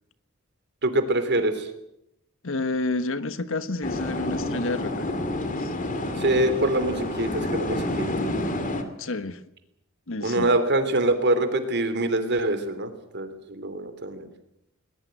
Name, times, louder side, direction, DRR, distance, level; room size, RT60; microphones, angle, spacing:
voice 1, 0.8-1.7 6.2-8.1 10.2-14.3, right 1 dB, 55° right, 3.2 m, -24 dB
voice 2, 2.4-5.0 5.6-5.7 9.0-9.4 10.1-10.5, left 2 dB, 70° left, 1.3 m, -29 dB
sound 1, 3.8-8.8, left 1 dB, 40° left, 2.6 m, -29 dB
21.0 x 20.0 x 9.1 m
head